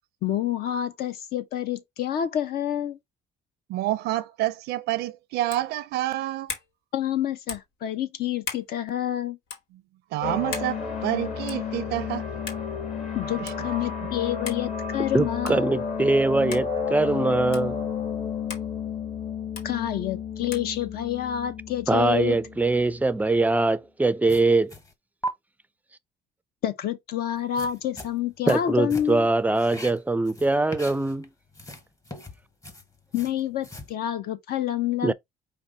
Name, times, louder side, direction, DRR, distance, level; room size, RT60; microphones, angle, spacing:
voice 1, 0.2-3.0 6.9-9.4 13.1-15.7 19.6-22.4 26.6-29.3 33.1-35.1, left 11 dB, 65° left, 0.8 m, -28 dB
voice 2, 3.7-6.5 10.1-12.3 13.4-13.5, right 15 dB, 80° right, 0.5 m, -28 dB
sound 1, 5.5-5.7 6.5-6.7 7.5-7.7 8.4-8.7 9.5-9.6 10.5-10.7 11.5-11.7 12.5-12.7 13.5-13.6 14.5-14.7 15.4-15.7 16.5-16.7 17.5-17.7 18.5-18.7 19.6-19.7 20.5-20.7, left 6 dB, 85° left, 1.2 m, -36 dB
sound 2, 10.2-23.3, left 6 dB, 45° left, 1.9 m, -32 dB
voice 3, 15.1-17.8 21.9-24.7 28.5-31.3 35.0-35.1, right 2 dB, 10° right, 0.3 m, -22 dB
sound 3, 24.3-24.9 25.2-25.3 27.4-28.6 28.9-29.3 29.5-31.3 31.5-33.9, right 1 dB, 20° left, 1.0 m, -39 dB
5.1 x 2.4 x 3.8 m
cardioid pair, 110°, 17 cm